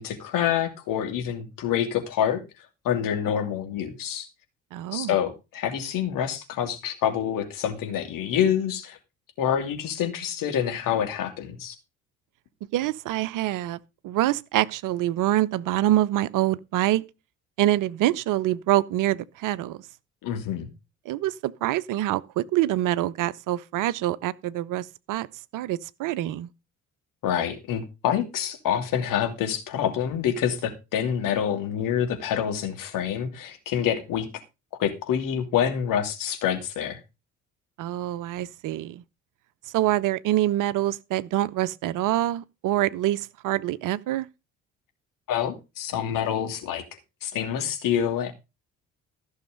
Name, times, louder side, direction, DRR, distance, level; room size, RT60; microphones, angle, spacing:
voice 1, 0.0-2.4 2.8-4.3 4.9-9.0 9.4-11.7 20.2-20.7 27.2-34.3 34.8-37.0 45.3-46.8 47.2-48.3, left 9 dB, 60° left, 2.9 m, -27 dB
voice 2, 4.7-5.1 12.7-13.8 14.0-17.0 17.6-19.8 21.1-25.3 25.5-26.5 37.8-39.0 39.7-44.3, right 14 dB, 55° right, 0.8 m, -25 dB
14.5 x 6.5 x 5.2 m
hypercardioid pair, 50°, 37 cm